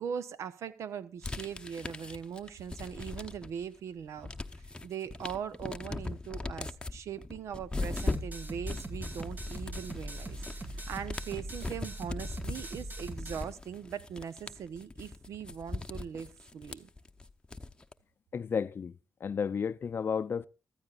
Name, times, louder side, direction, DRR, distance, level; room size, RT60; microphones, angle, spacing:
voice 1, 0.0-16.9, right 8 dB, 85° right, 0.8 m, -41 dB
sound 1, 1.2-3.6 4.0-17.9, left 2 dB, 20° left, 0.8 m, -40 dB
sound 2, 7.8-13.4, right 1 dB, 35° right, 2.4 m, -41 dB
voice 2, 18.3-18.9 19.2-20.5, left 6 dB, 50° left, 0.5 m, -32 dB
14.5 x 13.5 x 2.4 m
cardioid pair, 75°, 5 cm